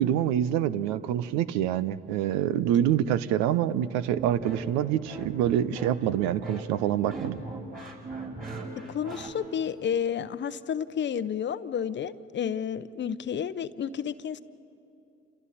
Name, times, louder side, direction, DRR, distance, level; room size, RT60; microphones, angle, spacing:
voice 1, 0.0-7.4, right 11 dB, 65° right, 16 dB, 0.8 m, -26 dB
sound 1, 4.1-9.3, right 2 dB, 30° right, 5.6 m, -39 dB
voice 2, 8.9-14.4, left 8 dB, 40° left, 14 dB, 0.8 m, -31 dB
29.5 x 27.5 x 4.3 m, 2.8 s
hypercardioid pair, 55°, 29 cm